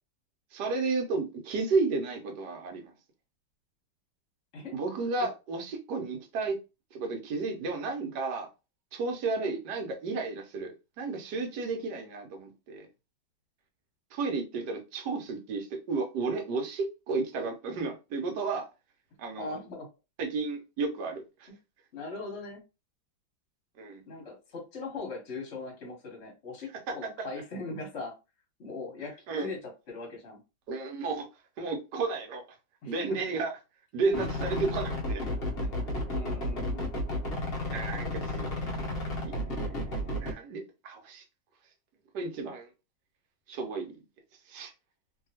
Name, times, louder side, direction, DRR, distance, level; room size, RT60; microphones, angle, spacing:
voice 1, 0.5-2.9 4.7-6.5 6.9-8.5 8.9-12.9 14.1-18.7 19.2-19.6 20.2-21.5 23.8-24.0 26.9-27.0 29.3-29.5 30.7-31.3 31.6-32.4 32.9-33.5 33.9-35.2 37.7-38.5 40.2-41.2 42.1-42.7 43.5-43.9 44.5-44.7, right 4 dB, 70° right, 1.2 m, -32 dB
voice 2, 19.4-19.9 21.9-22.6 24.1-28.2 28.6-29.6 29.9-30.4 32.8-33.2 35.6-35.7 36.1-36.8, left 3 dB, 45° left, 1.0 m, -40 dB
sound 1, 34.1-40.3, left 1 dB, 75° left, 0.5 m, -32 dB
2.8 x 2.7 x 2.7 m
omnidirectional pair, 2.1 m